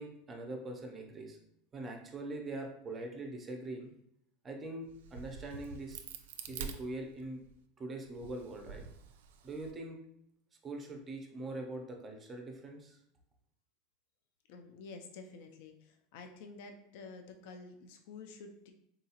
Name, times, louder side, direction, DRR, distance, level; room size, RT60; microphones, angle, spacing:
voice 1, 0.0-1.4 1.7-3.9 4.4-6.0 6.5-7.4 7.8-8.8 9.4-10.0 10.6-13.0, right 2 dB, 15° right, 2 dB, 0.5 m, -42 dB
Crack, 4.9-7.5 8.1-9.7, right 6 dB, 85° right, 0.3 m, -46 dB
voice 2, 14.5-18.7, left 4 dB, 60° left, 5 dB, 0.4 m, -50 dB
3.7 x 2.3 x 2.8 m, 0.77 s
supercardioid pair, 160°, 0 cm